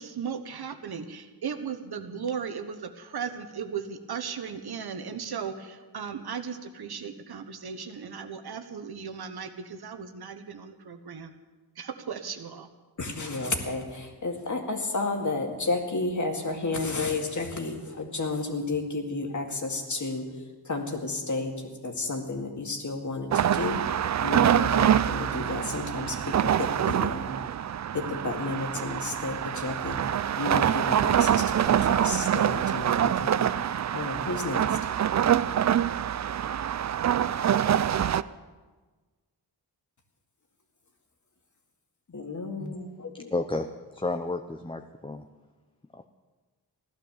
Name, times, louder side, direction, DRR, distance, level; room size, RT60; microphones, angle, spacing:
voice 1, 0.0-11.3 11.8-12.7, right 6 dB, 75° right, 8 dB, 1.2 m, -36 dB
voice 2, 13.0-20.3 20.7-23.8 24.2-27.4 27.9-30.0 30.4-34.8 42.1-43.3, left 3 dB, 50° left, 3 dB, 2.2 m, -32 dB
sound 1, 23.3-38.2, right 10 dB, 45° right, 0.4 m, -25 dB
voice 3, 43.3-43.7 43.9-45.2 45.9-46.1, left 2 dB, 15° left, 5 dB, 0.7 m, -31 dB
15.5 x 11.5 x 7.2 m, 1.3 s
wide cardioid pair, 105°, 39 cm